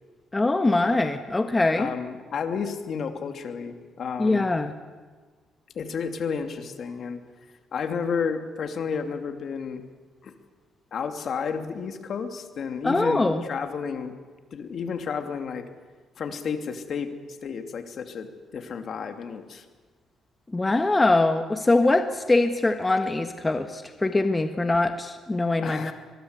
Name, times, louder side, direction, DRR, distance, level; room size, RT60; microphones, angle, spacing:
voice 1, 0.3-1.9 4.2-4.7 12.8-13.4 20.5-25.9, left 2 dB, 20° left, 7 dB, 1.5 m, -23 dB
voice 2, 1.8-4.5 5.7-7.2 7.7-9.8 10.2-10.3 10.9-14.1 14.5-15.7 16.2-17.1 17.4-19.6 25.6-25.9, left 6 dB, 60° left, 7 dB, 2.7 m, -31 dB
23.0 x 22.0 x 8.2 m, 1.4 s
cardioid pair, 90°, 0 cm